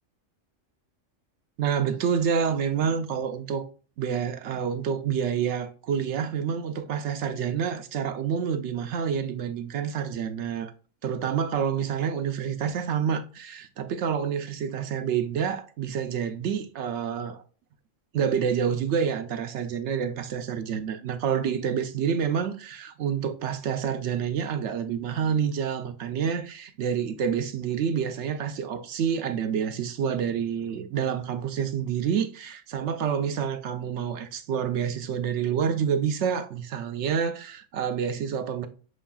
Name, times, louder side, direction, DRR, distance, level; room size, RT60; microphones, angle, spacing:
voice 1, 1.6-3.6 4.0-10.7 11.0-17.4 18.1-38.7, right 7 dB, 70° right, 0.8 m, -28 dB
6.2 x 3.2 x 2.2 m
omnidirectional pair, 1.3 m